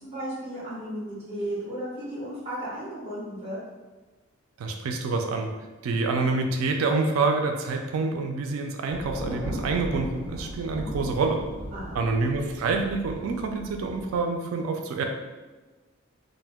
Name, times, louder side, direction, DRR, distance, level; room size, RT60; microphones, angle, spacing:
voice 1, 0.0-3.6 11.7-12.0, right 1 dB, 30° right, -8 dB, 1.2 m, -34 dB
voice 2, 4.6-5.5 5.8-11.4 11.9-15.0, right 3 dB, 90° right, 4 dB, 0.3 m, -27 dB
Thunder, 8.9-14.2, equal, 10° left, 0.9 m, -37 dB
2.7 x 2.1 x 3.4 m, 1.2 s
head